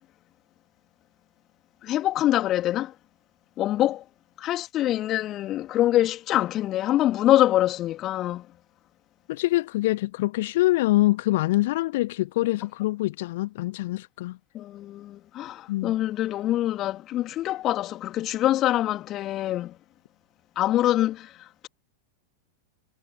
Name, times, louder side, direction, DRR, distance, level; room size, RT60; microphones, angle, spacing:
voice 1, 1.8-2.9 3.6-4.0 4.4-8.5 14.5-19.7 20.6-21.7, left 13 dB, 35° left, 3.1 m, -25 dB
voice 2, 9.3-14.4 15.7-15.9, left 18 dB, 55° left, 0.7 m, -25 dB
figure-of-eight pair, 90°, 0 cm